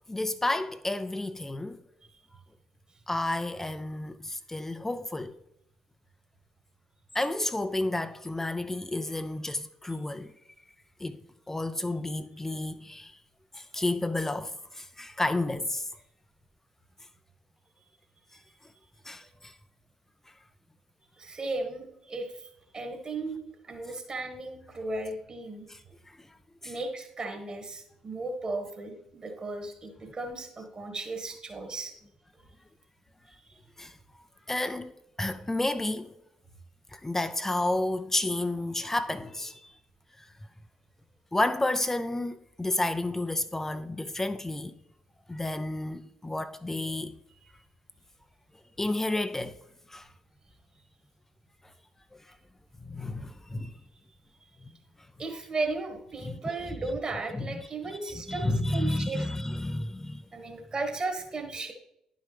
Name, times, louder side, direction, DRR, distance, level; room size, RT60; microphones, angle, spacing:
voice 1, 0.1-1.8 3.1-5.4 7.1-10.3 11.0-13.2 13.5-15.9 18.3-18.7 19.0-19.6 20.3-20.4 25.7-26.4 26.6-26.8 33.8-36.1 36.9-39.8 40.2-40.3 41.3-44.8 45.3-47.2 48.8-49.6 49.9-50.1 51.6-51.7 52.1-52.4 52.8-53.8 54.6-54.7 56.2-56.4 57.3-57.5 57.9-58.0 58.3-60.3, left 2 dB, 15° left, 0.4 m, -31 dB
voice 2, 21.1-22.5 22.7-25.7 26.6-31.9 33.3-33.4 47.4-47.5 55.2-59.3 60.3-61.7, right 3 dB, 35° right, 1.8 m, -35 dB
11.0 x 5.6 x 3.4 m
figure-of-eight pair, 45°, 3 cm